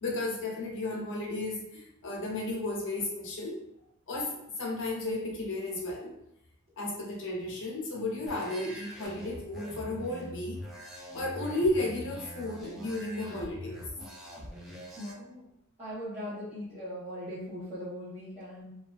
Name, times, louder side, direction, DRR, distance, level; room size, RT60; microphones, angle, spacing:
voice 1, 0.0-3.6 4.1-6.1 6.8-10.6 11.1-13.8, left 2 dB, 55° left, -2 dB, 0.6 m, -33 dB
sound 1, 8.3-15.1, left 1 dB, ahead, 0.4 m, -44 dB
voice 2, 15.0-15.5 15.8-18.7, equal, 25° right, -13 dB, 0.8 m, -40 dB
2.4 x 2.2 x 2.3 m, 0.80 s
head